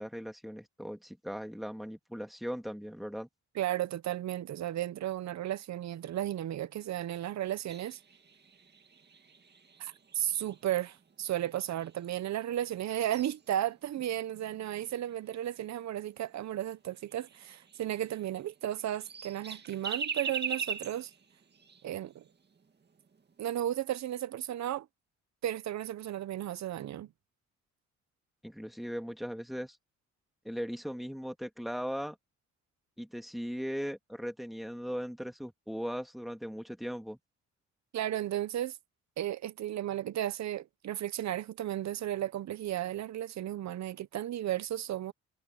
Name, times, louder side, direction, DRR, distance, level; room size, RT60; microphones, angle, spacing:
voice 1, 0.0-3.3 28.4-29.8 30.4-32.2 33.0-37.2, equal, ahead, 3.1 m, -38 dB
voice 2, 3.5-8.0 9.8-21.1 21.8-22.2 23.4-24.9 25.4-27.1 37.9-38.8 39.2-45.1, right 12 dB, 65° right, 1.0 m, -34 dB
sound 1, 7.7-12.2 12.5-15.8 16.3-16.4 16.7-16.8 17.1-18.5 18.8-22.3 22.6-22.7 23.1-23.3, right 6 dB, 35° right, 2.2 m, -42 dB
cardioid pair, 90°, 30 cm